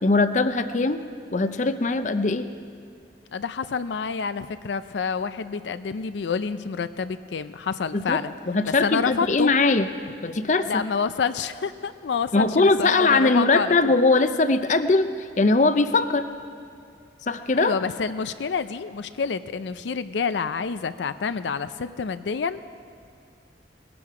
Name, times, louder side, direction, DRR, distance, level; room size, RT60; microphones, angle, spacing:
voice 1, 0.0-1.0 1.3-2.5 7.9-8.2 8.5-9.9 10.2-10.8 12.3-15.1 15.4-16.3 17.3-17.7, left 3 dB, 45° left, 10 dB, 0.6 m, -21 dB
voice 2, 3.3-8.3 8.7-9.5 10.7-13.9 17.5-22.6, left 5 dB, 85° left, 12 dB, 0.4 m, -28 dB
20.0 x 12.0 x 4.9 m, 2.3 s
head